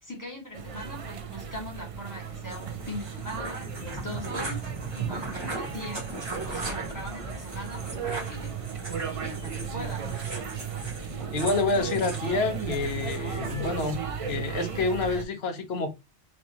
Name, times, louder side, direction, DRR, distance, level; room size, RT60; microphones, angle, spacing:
voice 1, 0.0-6.1 6.4-8.7 9.1-10.0, left 1 dB, 15° left, 1.6 m, -41 dB
sound 1, 0.5-15.2, right 6 dB, 45° right, 0.4 m, -36 dB
sound 2, 2.5-13.6, right 3 dB, 25° right, 0.9 m, -38 dB
voice 2, 11.3-14.0 14.3-15.9, left 3 dB, 60° left, 1.0 m, -28 dB
4.4 x 2.8 x 2.8 m
omnidirectional pair, 1.2 m